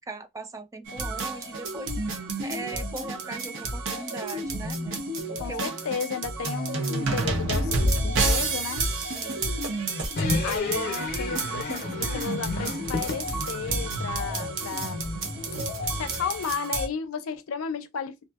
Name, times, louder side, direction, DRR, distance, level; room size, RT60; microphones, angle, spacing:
voice 1, 0.1-1.9 2.4-5.0 5.3-5.7 9.2-9.5, right 3 dB, 15° right, 0.4 m, -39 dB
sound 1, 0.9-16.9, right 2 dB, 65° right, 0.9 m, -30 dB
voice 2, 5.4-8.9 10.4-15.0 15.9-18.3, left 6 dB, 85° left, 0.5 m, -33 dB
sound 2, 10.1-16.5, left 2 dB, 50° left, 0.6 m, -33 dB
2.6 x 2.5 x 2.3 m
head